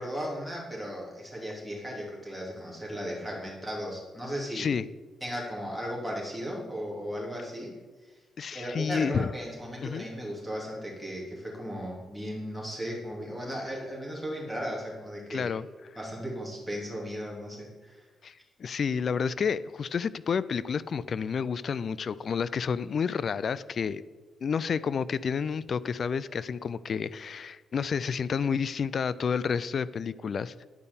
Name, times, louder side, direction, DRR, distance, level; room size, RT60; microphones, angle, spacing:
voice 1, 0.0-4.7 5.2-7.7 8.0-8.1 8.5-15.5 16.0-18.1, equal, 10° right, -4 dB, 3.1 m, -36 dB
voice 2, 8.4-9.3 9.8-10.0 15.3-15.7 18.2-24.0 24.4-30.5, left 6 dB, 45° left, 17 dB, 0.3 m, -30 dB
10.5 x 5.4 x 7.1 m, 1.3 s
cardioid pair, 125°, 0 cm